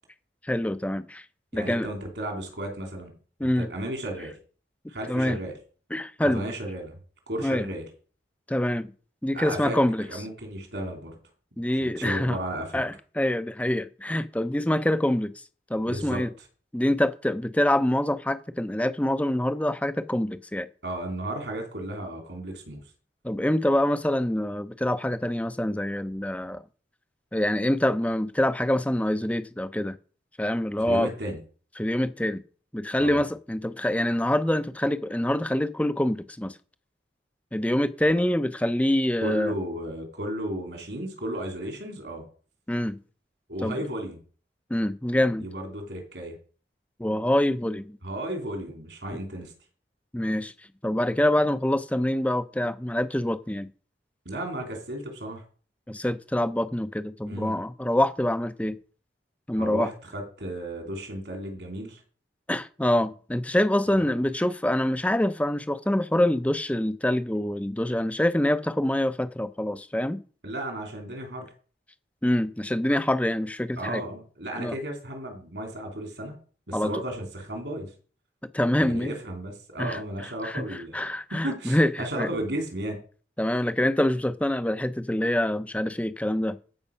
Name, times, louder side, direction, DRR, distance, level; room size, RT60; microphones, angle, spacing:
voice 1, 0.4-1.2 1.5-1.9 3.4-3.7 5.1-5.4 5.9-6.4 7.4-7.7 8.5-8.9 9.2-10.1 11.6-12.4 12.7-15.3 15.7-16.3 16.7-20.7 23.2-26.6 27.3-30.0 30.4-31.1 31.8-32.4 32.7-36.5 37.5-39.5 42.7-43.0 43.6-43.8 44.7-45.5 47.0-48.0 50.1-50.5 50.8-53.7 55.9-58.8 59.5-59.9 62.5-70.2 72.2-74.0 74.6-74.7 76.7-76.9 78.5-79.2 79.8-80.0 80.4-82.3 83.4-86.6, left 1 dB, 10° left, 0.6 m, -25 dB
voice 2, 1.5-3.1 3.4-4.4 4.9-5.5 6.2-7.0 7.3-7.8 9.3-9.8 10.1-11.2 11.8-12.8 15.7-16.3 20.8-22.8 30.9-31.4 33.0-33.2 39.2-42.3 43.5-44.2 45.2-46.4 48.0-49.5 54.3-55.4 57.3-57.6 59.5-62.0 70.4-71.5 73.8-76.3 76.7-77.9 78.8-83.0, right 1 dB, 75° right, 3.5 m, -34 dB
14.0 x 5.4 x 5.5 m
head